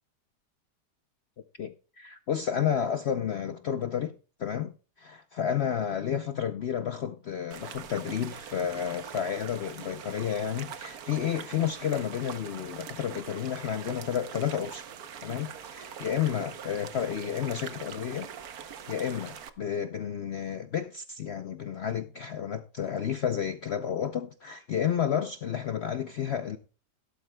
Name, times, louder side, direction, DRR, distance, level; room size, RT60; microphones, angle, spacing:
voice 1, 1.6-14.9 15.2-18.3 18.6-26.6, left 8 dB, 65° left, 0.6 m, -31 dB
sound 1, 7.5-19.5, right 8 dB, 65° right, 1.3 m, -43 dB
17.0 x 11.5 x 2.2 m
omnidirectional pair, 1.8 m